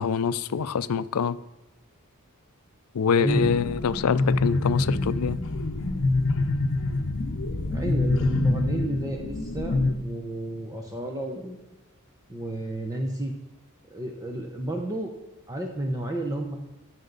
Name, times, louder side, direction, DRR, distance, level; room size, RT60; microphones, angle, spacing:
voice 1, 0.0-1.4 2.9-5.4, left 6 dB, 80° left, 0.4 m, -25 dB
voice 2, 3.2-3.5 7.7-11.6 12.3-13.3 13.9-15.1 15.5-16.6, right 1 dB, 15° right, 0.8 m, -31 dB
sound 1, 3.3-9.9, left 2 dB, 60° left, 0.8 m, -26 dB
14.5 x 6.0 x 4.0 m
head